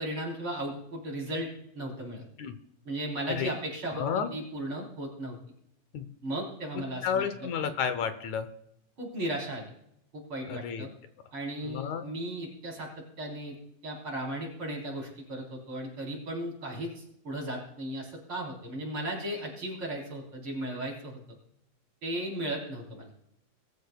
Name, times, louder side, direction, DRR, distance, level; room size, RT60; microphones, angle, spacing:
voice 1, 0.0-1.5 1.7-2.2 2.8-5.4 6.2-7.2 7.6-7.7 9.0-9.6 10.1-10.9 11.3-12.9 13.2-13.6 13.8-21.2 22.0-23.1, right 1 dB, 35° right, -2 dB, 4.6 m, -36 dB
voice 2, 4.0-4.3 5.9-6.1 6.7-8.5 10.5-10.9 11.6-12.1, left 7 dB, 70° left, 9 dB, 1.9 m, -31 dB
22.5 x 13.5 x 2.4 m, 0.74 s
omnidirectional pair, 4.2 m